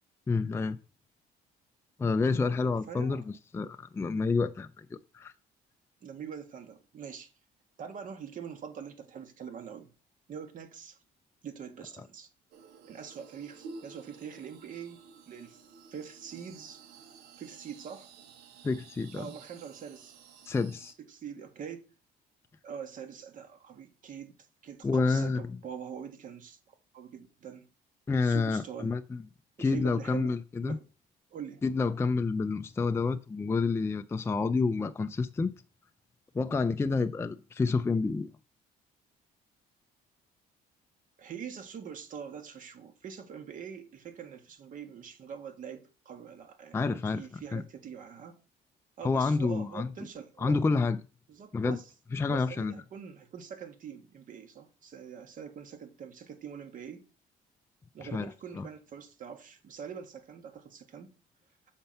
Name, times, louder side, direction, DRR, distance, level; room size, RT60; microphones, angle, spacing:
voice 1, 0.3-0.8 2.0-4.9 5.1-5.3 18.6-19.3 20.5-20.9 24.8-25.5 28.1-29.2 29.6-30.8 31.6-35.5 36.3-38.3 46.7-47.2 47.5-47.6 49.0-49.9 50.4-51.0 51.5-51.8 52.1-52.7 58.0-58.7, left 4 dB, 15° left, 0.4 m, -29 dB
voice 2, 2.9-3.2 6.0-7.3 7.8-9.9 10.3-11.0 11.4-12.3 12.9-15.6 15.9-16.8 17.4-18.1 19.1-20.2 21.0-21.9 22.6-24.4 24.6-27.7 28.2-28.9 29.6-30.4 30.6-30.9 31.3-31.6 41.2-48.4 49.0-50.6 51.3-51.9 52.3-57.0 57.9-61.1, right 7 dB, 50° right, 1.5 m, -44 dB
sound 1, 12.5-20.9, right 5 dB, 85° right, 1.1 m, -52 dB
7.0 x 4.4 x 5.4 m
cardioid pair, 110°, 17 cm